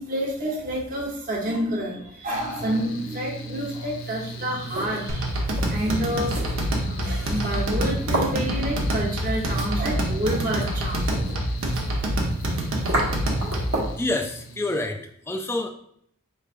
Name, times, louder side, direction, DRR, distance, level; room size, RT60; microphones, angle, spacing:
voice 1, 0.0-11.1 11.6-12.2 12.8-13.7, equal, 40° right, -2 dB, 1.0 m, -29 dB
Mechanical fan, 2.3-14.9, right 2 dB, 80° left, 0.4 m, -38 dB
sound 1, 3.9-14.1, right 1 dB, 85° right, 1.2 m, -34 dB
sound 2, 5.1-13.8, equal, 70° right, 0.8 m, -26 dB
voice 2, 14.0-15.7, left 2 dB, 10° left, 5 dB, 0.3 m, -28 dB
4.5 x 3.3 x 2.5 m, 0.67 s
head